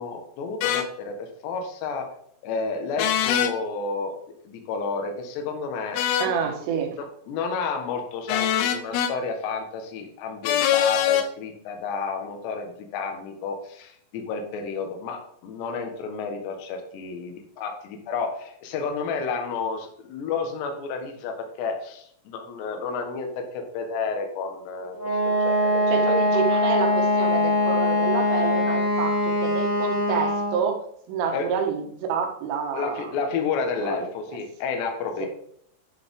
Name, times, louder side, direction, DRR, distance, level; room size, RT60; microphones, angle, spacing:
voice 1, 0.0-2.1 2.4-4.2 4.4-6.0 6.4-6.5 6.9-25.0 25.4-25.8 31.3-31.5 32.7-35.3, left 5 dB, 70° left, 4 dB, 3.3 m, -31 dB
sound 1, 0.6-0.9 3.0-3.5 5.9-6.3 8.3-9.1 10.4-11.3, left 9 dB, 90° left, 3.2 m, -23 dB
voice 2, 6.2-7.0 25.9-30.8 31.1-33.1 33.8-34.0 35.2-35.3, right 6 dB, 85° right, 3 dB, 4.0 m, -28 dB
Wind instrument woodwind instrument, 25.0-30.7, left 1 dB, 30° right, 2.7 m, -22 dB
11.0 x 6.9 x 3.7 m, 0.67 s
omnidirectional pair, 5.5 m